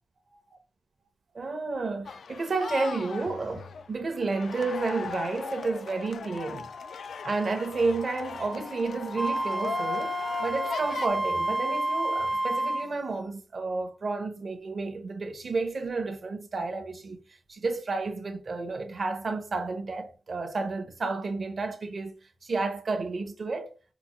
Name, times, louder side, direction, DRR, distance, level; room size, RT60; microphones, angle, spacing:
voice 1, 1.3-6.7 7.2-17.2 17.5-22.1 22.4-23.7, right 3 dB, 55° right, 0.7 m, -31 dB
sound 1, 2.1-11.1, left 6 dB, 80° left, 0.3 m, -38 dB
Wind instrument woodwind instrument, 9.2-12.9, right 2 dB, 25° right, 0.3 m, -29 dB
4.8 x 2.1 x 3.0 m
cardioid pair, 80°, 0 cm